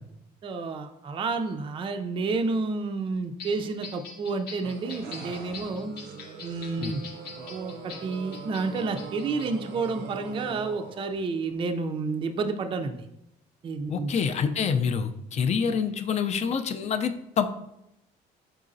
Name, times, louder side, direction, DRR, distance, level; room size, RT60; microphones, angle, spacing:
voice 1, 0.4-5.9 6.4-7.0 7.5-12.9 13.6-14.1, right 4 dB, 30° right, 6 dB, 0.4 m, -30 dB
sound 1, 3.4-9.9 10.3-10.5, left 5 dB, 75° left, 0.8 m, -44 dB
sound 2, 4.6-11.3, right 5 dB, 85° right, 0.5 m, -42 dB
voice 2, 13.9-17.5, left 6 dB, 40° left, 8 dB, 0.4 m, -27 dB
4.7 x 4.0 x 2.5 m, 0.81 s
cardioid pair, 110°, 17 cm